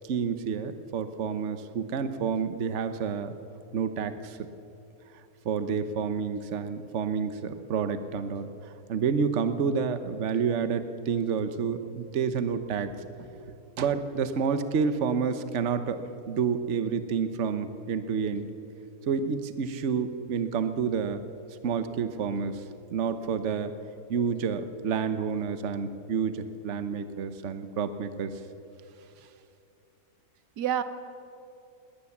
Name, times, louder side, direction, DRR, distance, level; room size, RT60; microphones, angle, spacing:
voice 1, 0.0-3.3 3.7-4.5 5.1-12.9 13.8-18.5 19.1-21.2 21.6-22.6 22.9-23.7 24.1-28.4, right 6 dB, 50° right, 10 dB, 1.2 m, -29 dB
voice 2, 13.2-13.9 29.0-29.3 30.6-30.8, right 10 dB, 85° right, 11 dB, 1.5 m, -33 dB
20.0 x 19.0 x 7.2 m, 2.7 s
omnidirectional pair, 1.7 m